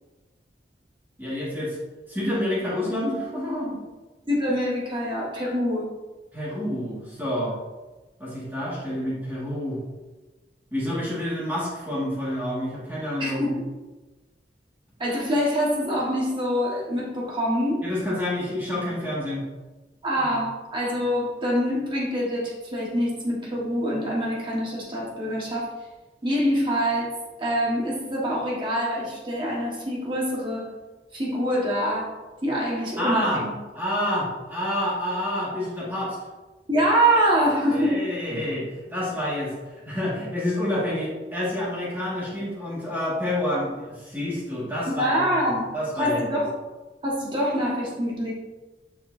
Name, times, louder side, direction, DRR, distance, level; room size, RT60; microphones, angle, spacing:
voice 1, 1.2-1.8 2.1-3.8 6.3-7.5 8.2-9.8 10.7-13.5 17.8-19.5 20.2-20.3 33.0-33.4 33.7-36.2 37.7-46.2, left 1 dB, 10° right, -8 dB, 2.0 m, -28 dB
voice 2, 4.2-5.9 13.2-13.6 15.0-17.8 20.0-25.7 26.2-27.1 27.4-30.7 31.1-32.1 32.4-33.5 36.7-38.0 44.9-45.6 45.9-46.5 47.0-48.3, equal, 30° right, -4 dB, 1.6 m, -25 dB
6.9 x 5.7 x 2.8 m, 1.2 s
head